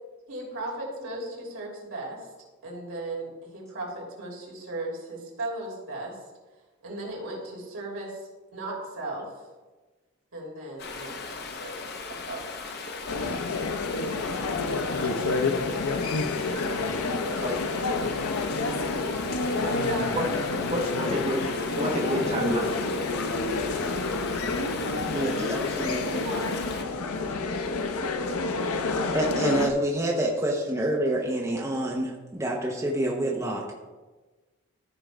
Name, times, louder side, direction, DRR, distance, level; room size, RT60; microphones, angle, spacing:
voice 1, 0.3-2.3 2.6-6.2 6.8-9.3 10.3-12.6 15.5-16.0 18.7-19.0 19.6-20.1 20.7-21.2 25.1-25.6 26.2-26.5, right 1 dB, 80° right, -3 dB, 2.9 m, -37 dB
Stream, 10.8-26.8, left 4 dB, 50° left, 0.7 m, -38 dB
sound 1, 13.1-29.7, left 3 dB, 85° left, 0.6 m, -29 dB
voice 2, 20.7-21.4 21.8-22.8, equal, 30° right, -3 dB, 1.2 m, -28 dB
voice 3, 25.0-26.2 29.1-33.8, right 1 dB, 15° right, -2 dB, 0.8 m, -28 dB
14.0 x 5.0 x 3.4 m, 1.2 s
head